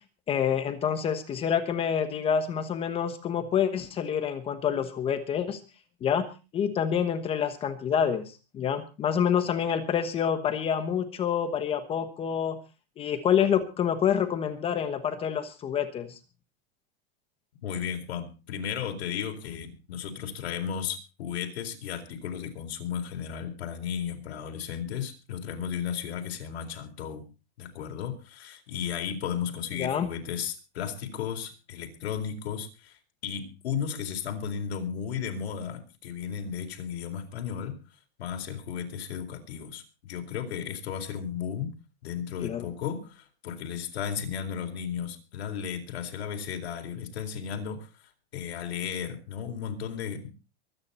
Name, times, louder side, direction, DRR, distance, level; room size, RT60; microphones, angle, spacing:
voice 1, 0.3-5.6 6.0-6.3 6.5-12.6 13.0-16.2 29.7-30.1 42.4-42.7, left 8 dB, 20° left, 9 dB, 1.1 m, -27 dB
voice 2, 17.6-27.3 27.6-33.0 33.2-37.8 38.2-41.7 42.0-47.9 48.3-50.3, left 8 dB, 80° left, 4 dB, 4.1 m, -34 dB
23.5 x 9.8 x 4.2 m, 0.32 s
supercardioid pair, 165°, 32 cm